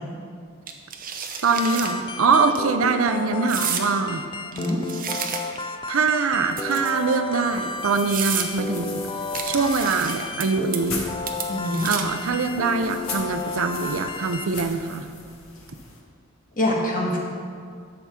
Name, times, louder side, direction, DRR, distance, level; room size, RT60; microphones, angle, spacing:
sound 1, 0.7-1.9 2.3-2.6 3.5-3.9 4.5-5.7 6.5-7.1 7.6-7.7 8.1-8.5 9.3-10.4 10.7-11.0 11.3-12.2, right 7 dB, 40° right, 0.7 m, -30 dB
voice 1, 1.4-4.2 5.9-9.0 9.4-11.1 11.8-15.1, right 4 dB, 75° right, 8 dB, 0.6 m, -23 dB
sound 2, 1.6-14.5, left 3 dB, 25° left, 0.4 m, -33 dB
sound 3, 7.4-16.0, left 4 dB, 85° left, 1.5 m, -39 dB
voice 2, 11.5-11.9 16.6-17.2, left 1 dB, 40° left, -2 dB, 1.6 m, -24 dB
11.5 x 7.0 x 3.7 m, 2.3 s
head